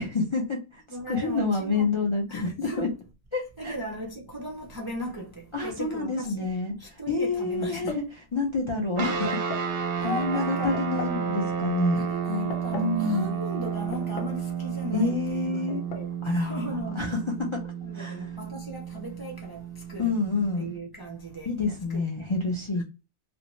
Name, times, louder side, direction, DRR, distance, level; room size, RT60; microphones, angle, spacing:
voice 1, 0.0-0.8 1.1-2.9 3.3-3.7 5.5-8.0 8.3-9.7 10.0-13.3 14.9-15.8 16.2-18.2 20.0-20.7 21.5-22.8, left 3 dB, 45° left, 0.4 m, -28 dB
voice 2, 0.9-1.9 2.3-2.9 3.6-6.5 6.8-8.0 10.0-10.8 12.0-16.1 16.4-17.1 17.8-19.6 19.9-20.1 20.6-21.5 21.9-22.0 22.8-22.9, right 1 dB, 40° right, 0.3 m, -37 dB
sound 1, 7.6-8.1 9.3-9.7 10.7-11.2 12.3-13.0 13.9-14.5 14.7-14.8 15.7-16.1, left 4 dB, 85° left, 0.9 m, -38 dB
sound 2, 9.0-20.8, right 7 dB, 65° right, 0.7 m, -32 dB
2.5 x 2.1 x 3.0 m
omnidirectional pair, 1.2 m